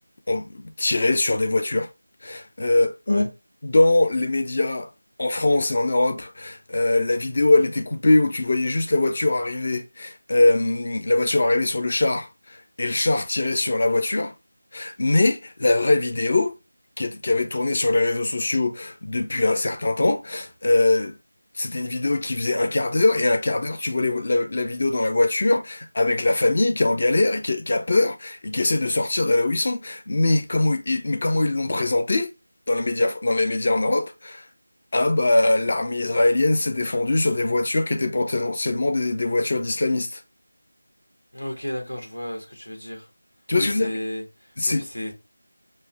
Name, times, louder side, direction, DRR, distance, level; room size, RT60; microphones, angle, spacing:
voice 1, 0.3-1.9 2.2-3.3 3.6-4.9 5.2-14.3 14.7-16.5 17.0-21.1 21.6-32.3 32.7-34.4 34.9-40.2 43.5-43.9 44.6-44.8, left 2 dB, 35° left, 0.6 m, -22 dB
voice 2, 41.3-43.1 43.5-45.1, left 1 dB, 70° left, 1.6 m, -33 dB
5.4 x 2.2 x 3.3 m
figure-of-eight pair, 170°, 0 cm